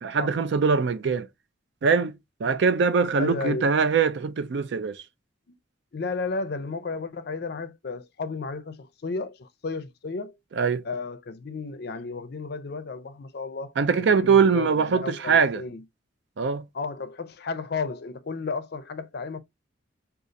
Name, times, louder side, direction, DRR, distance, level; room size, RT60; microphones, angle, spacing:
voice 1, 0.0-1.3 1.8-2.2 2.4-5.0 10.5-10.8 13.8-15.6 16.4-16.6, right 5 dB, 65° right, 0.4 m, -22 dB
voice 2, 3.2-3.7 5.5-5.6 5.9-10.4 10.8-15.8 16.7-19.4, left 4 dB, 55° left, 0.4 m, -33 dB
4.9 x 2.4 x 2.6 m
head